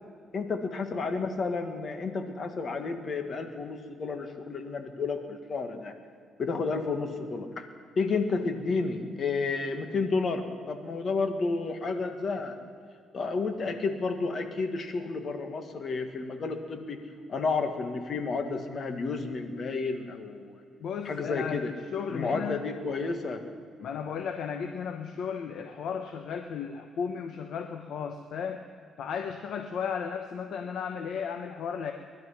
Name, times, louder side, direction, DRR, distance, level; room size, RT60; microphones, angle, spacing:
voice 1, 0.3-5.9 6.4-7.6 7.9-12.6 13.1-17.0 17.3-20.6 21.0-21.7 22.1-23.4, left 4 dB, 50° left, 7 dB, 1.6 m, -31 dB
voice 2, 20.8-22.6 23.8-28.6 29.0-31.9, left 7 dB, 70° left, 6 dB, 0.9 m, -34 dB
20.5 x 12.0 x 5.8 m, 2.2 s
cardioid pair, 90°, 0 cm